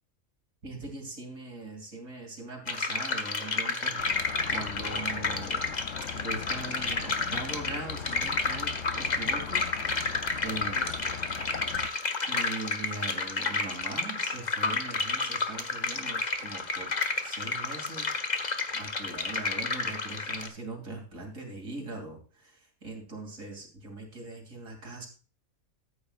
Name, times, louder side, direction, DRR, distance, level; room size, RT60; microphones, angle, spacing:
voice 1, 0.6-5.7 6.1-9.9 10.4-11.0 12.3-16.9 17.2-25.1, right 2 dB, 65° right, 1 dB, 3.3 m, -41 dB
sound 1, 2.7-20.5, left 3 dB, 35° left, 1.1 m, -31 dB
sound 2, 4.0-11.9, left 7 dB, 60° left, 0.9 m, -41 dB
14.0 x 8.9 x 2.5 m, 0.37 s
omnidirectional pair, 1.5 m